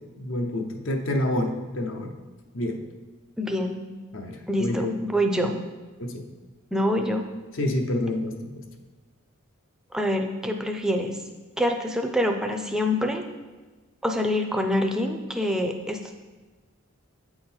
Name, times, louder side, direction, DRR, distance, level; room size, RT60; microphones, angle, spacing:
voice 1, 0.2-2.1 2.5-2.8 4.1-5.0 6.0-6.3 7.5-8.7, left 1 dB, 60° left, 3 dB, 0.7 m, -28 dB
voice 2, 3.4-3.8 4.5-5.6 6.7-7.3 9.9-11.2 11.6-13.2 14.0-16.2, equal, 5° right, 4 dB, 0.4 m, -26 dB
8.3 x 3.8 x 4.4 m, 1.3 s
head